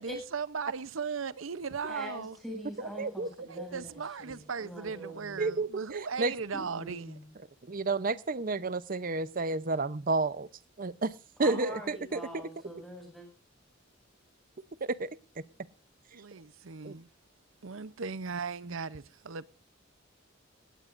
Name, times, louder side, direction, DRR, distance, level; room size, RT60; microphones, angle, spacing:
voice 1, 0.0-2.4 3.5-7.2 16.1-17.1 17.6-19.5, right 5 dB, 90° right, 0.7 m, -37 dB
voice 2, 1.9-5.6 6.5-7.3 11.4-13.3, equal, ahead, 7.5 m, -43 dB
voice 3, 3.0-3.3 3.6-3.7 5.4-5.7 6.2-6.3 7.7-10.5 10.8-12.5 14.8-15.1 16.8-17.0, right 3 dB, 45° right, 0.7 m, -31 dB
18.5 x 16.0 x 2.6 m
head